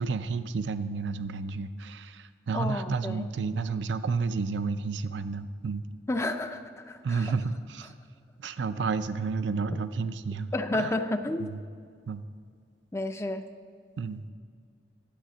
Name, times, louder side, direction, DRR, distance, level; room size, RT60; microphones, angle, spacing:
voice 1, 0.0-5.8 7.0-7.9 8.4-10.9 11.4-11.6 12.1-12.2 14.0-14.2, right 4 dB, 70° right, 12 dB, 0.4 m, -31 dB
voice 2, 2.5-3.3 6.1-7.3 10.5-11.5 12.9-13.4, left 2 dB, 15° left, 7 dB, 0.4 m, -31 dB
12.0 x 8.1 x 5.0 m, 2.1 s
head